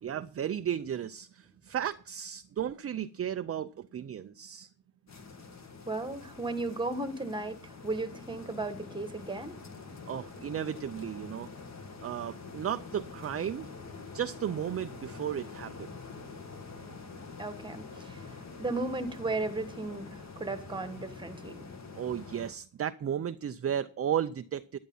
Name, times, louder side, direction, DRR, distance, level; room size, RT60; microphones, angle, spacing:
voice 1, 0.0-4.7 10.1-11.5 12.0-13.7 14.1-15.9 22.0-24.8, right 9 dB, 35° right, 0.5 m, -34 dB
sound 1, 5.1-22.5, left 4 dB, 40° left, 2.2 m, -46 dB
voice 2, 5.8-9.6 17.4-21.7, right 2 dB, 10° right, 1.5 m, -35 dB
10.5 x 10.5 x 5.5 m
cardioid pair, 125°, 43 cm